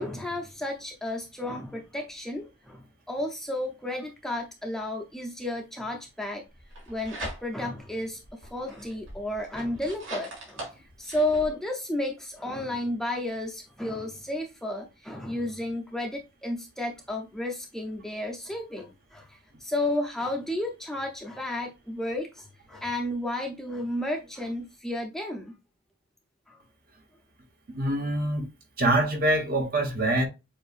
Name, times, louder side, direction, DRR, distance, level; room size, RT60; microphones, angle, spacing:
voice 1, 0.0-6.4 6.9-25.5 26.5-26.6, left 1 dB, ahead, 0.5 m, -32 dB
sound 1, 6.6-7.8 8.2-11.5, right 1 dB, 80° right, 2.8 m, -40 dB
voice 2, 27.7-28.4 28.8-30.3, right 1 dB, 45° right, 1.0 m, -24 dB
7.2 x 2.6 x 2.4 m
head